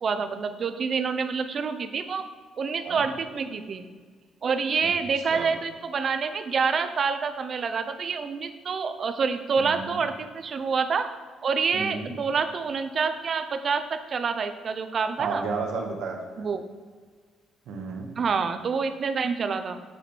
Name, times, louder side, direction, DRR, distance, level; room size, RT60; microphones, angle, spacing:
voice 1, 0.0-2.2 2.6-3.9 4.4-11.1 11.4-15.4 16.4-16.7 18.2-19.8, right 5 dB, 40° right, 9 dB, 0.5 m, -27 dB
voice 2, 9.6-10.0 11.7-12.1 15.2-16.4 17.7-18.1, right 4 dB, 75° right, 2 dB, 1.1 m, -33 dB
7.4 x 5.0 x 4.4 m, 1.5 s
cardioid pair, 135°, 0 cm